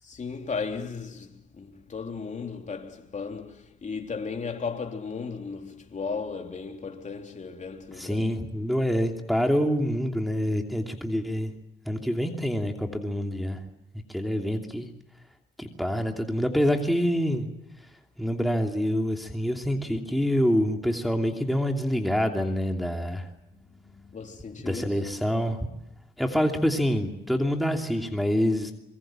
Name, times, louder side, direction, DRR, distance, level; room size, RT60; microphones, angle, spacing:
voice 1, 0.0-8.3 8.5-8.7 23.5-25.0, left 5 dB, 35° left, 3.4 m, -36 dB
voice 2, 8.0-11.5 11.9-13.6 14.1-14.9 15.6-17.5 18.2-23.3 24.7-25.6 26.2-28.7, equal, ahead, 2.8 m, -26 dB
25.0 x 23.0 x 7.6 m
cardioid pair, 90°, 20 cm